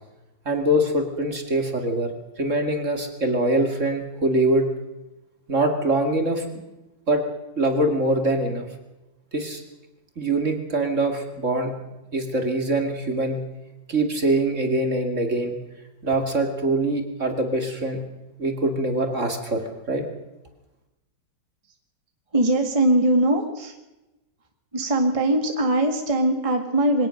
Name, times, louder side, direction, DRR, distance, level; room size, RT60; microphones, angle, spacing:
voice 1, 0.5-4.7 5.5-6.6 7.1-7.2 7.6-8.7 9.3-9.6 10.2-11.7 12.1-13.4 13.9-15.6 16.0-18.0 18.4-19.6 19.9-20.0, right 1 dB, 40° right, 4 dB, 2.6 m, -23 dB
voice 2, 22.3-23.8 24.7-27.1, right 1 dB, 20° right, 3 dB, 2.0 m, -21 dB
23.0 x 18.0 x 6.5 m, 1.0 s
omnidirectional pair, 2.0 m